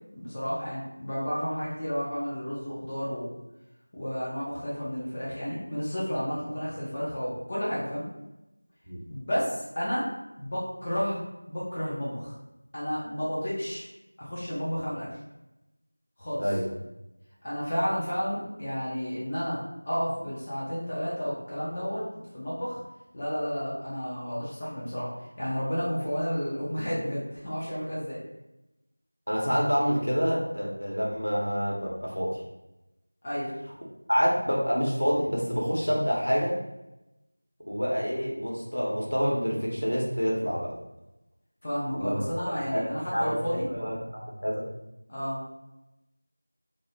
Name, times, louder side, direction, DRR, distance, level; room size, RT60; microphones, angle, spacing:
voice 1, 0.1-3.3 3.9-8.1 9.1-10.1 10.4-12.3 12.7-13.9 14.2-15.2 16.2-16.5 17.4-22.0 22.3-22.8 23.1-25.1 25.4-28.2 33.2-33.5 41.6-43.6 45.1-45.4, equal, 20° left, -9 dB, 0.5 m, -31 dB
voice 2, 29.3-32.4 34.1-36.6 37.7-40.7 41.9-42.2 42.5-43.4 43.7-43.9 44.2-44.6, equal, 85° left, -3 dB, 0.9 m, -27 dB
2.7 x 2.1 x 2.7 m, 0.94 s
figure-of-eight pair, 175°, 0 cm